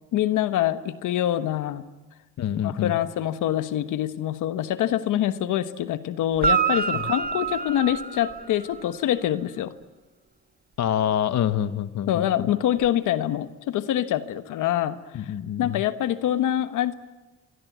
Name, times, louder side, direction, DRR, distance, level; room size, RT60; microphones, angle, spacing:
voice 1, 0.1-1.8 2.6-9.7 12.1-15.3 15.6-16.9, left 12 dB, 85° left, 11 dB, 1.3 m, -25 dB
voice 2, 2.4-3.0 6.9-7.1 10.8-12.5 15.1-15.8, left 10 dB, 65° left, 12 dB, 1.1 m, -26 dB
Guitar, 6.4-8.9 12.8-12.9, right 6 dB, 30° right, 1.4 m, -26 dB
25.5 x 24.0 x 9.4 m, 1.2 s
cardioid pair, 90°, 30 cm